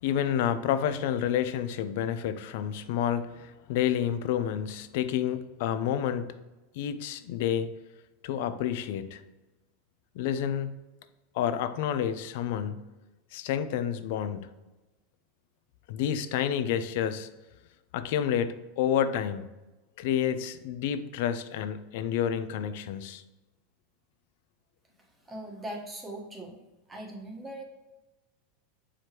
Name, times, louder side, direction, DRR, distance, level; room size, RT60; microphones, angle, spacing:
voice 1, 0.0-6.3 6.8-7.7 8.2-9.2 10.2-10.7 11.3-12.8 13.3-14.5 15.9-17.3 17.9-19.4 20.0-23.2, left 9 dB, 65° left, 11 dB, 0.5 m, -29 dB
voice 2, 25.0-26.6 26.9-27.6, right 1 dB, 15° right, 0 dB, 1.2 m, -40 dB
7.7 x 4.9 x 2.9 m, 1.1 s
supercardioid pair, 140°, 0 cm